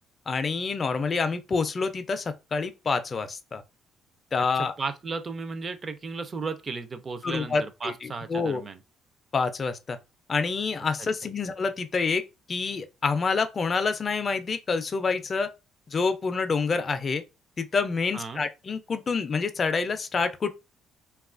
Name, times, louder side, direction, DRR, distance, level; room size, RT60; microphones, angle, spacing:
voice 1, 0.3-3.6 4.3-4.7 7.2-7.9 8.3-8.6 9.3-10.0 10.3-12.2 12.5-15.5 15.9-17.2 17.6-20.5, left 4 dB, 35° left, 0.4 m, -27 dB
voice 2, 4.5-8.8 11.2-11.3 18.1-18.4, right 4 dB, 35° right, 0.4 m, -35 dB
2.9 x 2.3 x 2.4 m
cardioid pair, 110°, 0 cm